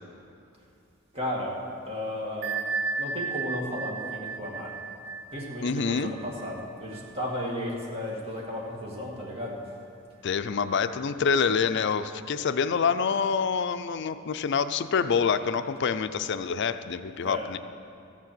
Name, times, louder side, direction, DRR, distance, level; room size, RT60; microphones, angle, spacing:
voice 1, 1.1-1.5 1.9-2.6 3.0-4.7 5.3-9.6 17.2-17.4, left 1 dB, 30° right, -3 dB, 2.2 m, -34 dB
Bell, 2.4-7.8, right 4 dB, 55° right, 0.6 m, -35 dB
voice 2, 5.6-6.1 10.2-17.6, left 6 dB, 55° left, 11 dB, 0.4 m, -26 dB
14.0 x 7.4 x 7.8 m, 2.4 s
head